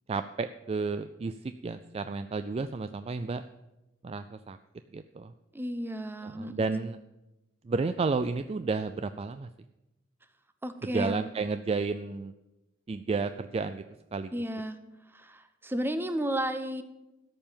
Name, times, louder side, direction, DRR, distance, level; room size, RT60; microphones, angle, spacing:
voice 1, 0.1-3.4 4.0-4.6 4.9-5.3 6.2-7.0 7.6-9.5 10.9-12.3 12.9-13.8 14.1-14.3, right 4 dB, 30° right, 11 dB, 0.3 m, -32 dB
voice 2, 5.5-6.9 10.6-11.3 14.3-14.8 15.1-16.8, right 1 dB, 10° right, 10 dB, 0.7 m, -33 dB
13.0 x 5.5 x 8.8 m, 0.98 s
head